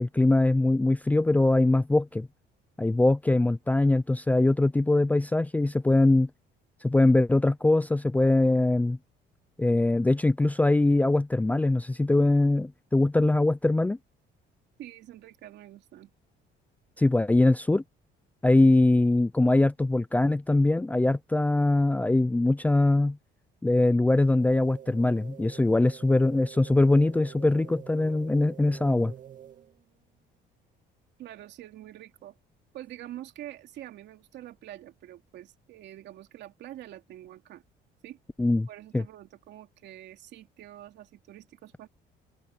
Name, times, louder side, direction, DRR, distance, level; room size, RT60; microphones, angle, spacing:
voice 1, 0.0-2.3 2.8-6.3 6.8-9.0 9.6-14.0 17.0-17.8 18.4-23.2 23.6-29.1 38.4-38.7 38.9-39.0, left 2 dB, 10° left, 0.5 m, -22 dB
voice 2, 14.8-16.1 31.2-32.3 32.7-37.6 38.0-38.2 38.7-41.9, right 13 dB, 70° right, 3.0 m, -45 dB
sound 1, 24.4-29.8, right 10 dB, 45° right, 2.2 m, -47 dB
cardioid pair, 140°, 19 cm